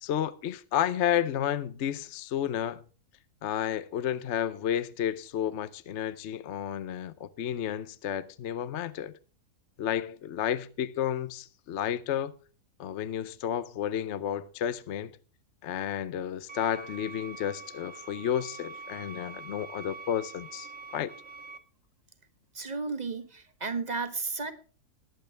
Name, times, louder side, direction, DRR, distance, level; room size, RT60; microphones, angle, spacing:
voice 1, 0.0-2.8 3.4-9.1 9.8-12.3 12.8-15.1 15.6-21.1, left 10 dB, 60° left, 0.8 m, -31 dB
sound 1, 16.5-21.6, right 4 dB, 45° right, 1.4 m, -45 dB
voice 2, 22.5-24.5, right 4 dB, 30° right, 1.4 m, -33 dB
20.5 x 8.5 x 3.3 m
omnidirectional pair, 1.7 m